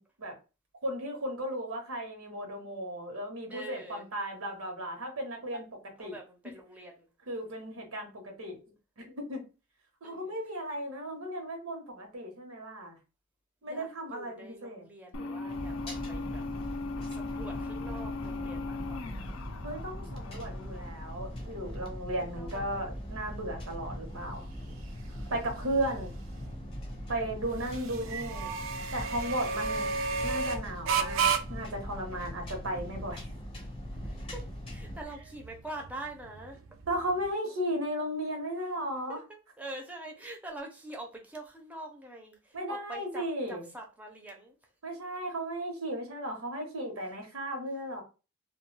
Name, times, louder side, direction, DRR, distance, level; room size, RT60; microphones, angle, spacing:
voice 1, 0.8-5.6 6.0-6.2 7.3-8.6 9.0-9.4 10.0-13.0 13.6-14.9 19.6-24.5 25.3-26.1 27.1-28.5 28.9-33.3 36.9-39.2 42.5-43.6 44.8-48.0, right 1 dB, 90° right, 0.9 m, -35 dB
voice 2, 3.5-4.1 6.0-7.1 10.0-10.3 13.6-16.4 17.1-19.0 22.2-22.9 29.7-30.2 34.0-34.4 34.7-36.6 39.1-44.6, right 1 dB, 5° right, 0.4 m, -45 dB
sound 1, 15.1-21.5, left 3 dB, 70° left, 0.4 m, -39 dB
sound 2, 15.5-35.0, equal, 30° left, 0.7 m, -41 dB
sound 3, 20.1-37.3, right 5 dB, 70° right, 0.4 m, -36 dB
2.2 x 2.2 x 3.1 m
head